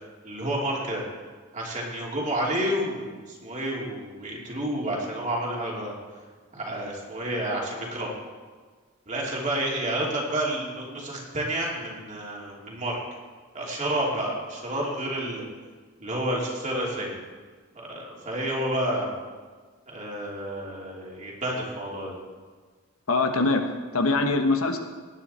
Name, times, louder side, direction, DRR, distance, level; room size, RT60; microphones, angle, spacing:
voice 1, 0.2-1.0 1.5-5.9 6.5-8.1 9.1-13.0 13.5-15.4 16.0-17.2 17.7-19.1 19.9-22.1, right 1 dB, 35° right, -3 dB, 2.9 m, -30 dB
voice 2, 23.1-24.8, left 3 dB, 80° left, 5 dB, 1.3 m, -23 dB
18.0 x 9.5 x 4.4 m, 1.5 s
head